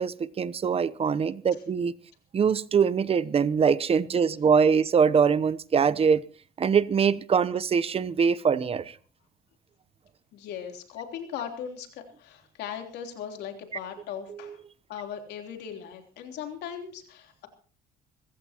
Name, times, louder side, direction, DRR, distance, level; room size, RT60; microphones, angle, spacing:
voice 1, 0.0-1.9 2.3-6.2 6.6-8.9 14.3-14.5, right 6 dB, 35° right, 0.8 m, -23 dB
voice 2, 10.3-14.6 14.9-17.5, left 8 dB, 80° left, 3.4 m, -38 dB
26.0 x 15.0 x 2.9 m
cardioid pair, 110°, 17 cm